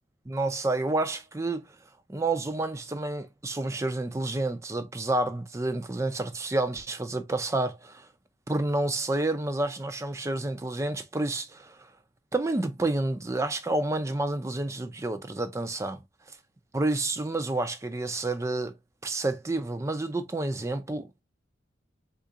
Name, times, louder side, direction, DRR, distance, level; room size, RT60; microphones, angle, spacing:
voice 1, 0.3-1.7 2.1-8.1 8.5-11.9 12.3-16.0 16.3-16.4 16.7-18.7 19.0-21.2, right 2 dB, 15° right, 0.4 m, -29 dB
3.7 x 2.5 x 2.6 m
head